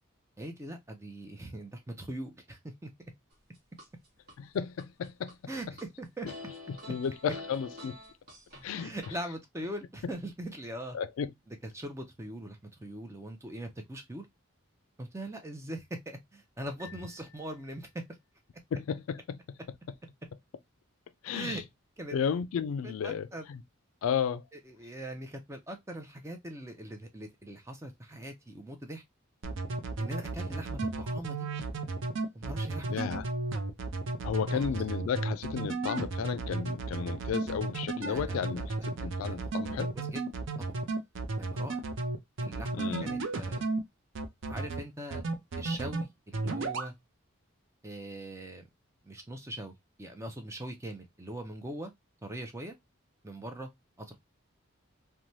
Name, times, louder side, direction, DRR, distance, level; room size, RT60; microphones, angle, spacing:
voice 1, 0.4-2.9 5.5-6.3 8.8-11.0 11.5-14.3 15.0-18.0 21.3-21.6 22.0-22.2 22.8-23.5 24.5-29.0 30.0-31.5 32.3-33.2 34.5-34.7 38.0-40.2 40.6-40.7 41.4-41.8 42.4-43.6 44.5-45.2 45.6-46.9 47.8-48.6 49.0-51.9 52.2-52.7 53.2-53.7 54.0-54.1, right 1 dB, 15° right, 0.4 m, -41 dB
sound 1, 3.3-4.4 4.8-5.9 6.3-9.2, left 2 dB, 45° right, 1.0 m, -47 dB
voice 2, 4.4-5.4 6.2-6.3 6.9-8.0 8.6-8.9 10.9-11.3 18.7-19.4 21.2-21.6 22.1-23.6 24.0-24.4 32.9-33.3 34.2-39.9 42.7-43.2, left 7 dB, 75° left, 0.3 m, -33 dB
sound 2, 16.8-18.3, left 6 dB, 25° left, 0.9 m, -55 dB
sound 3, 29.4-43.8 44.1-44.8 45.1-46.0 46.3-46.9, right 3 dB, 60° right, 0.5 m, -33 dB
3.1 x 2.2 x 2.6 m
head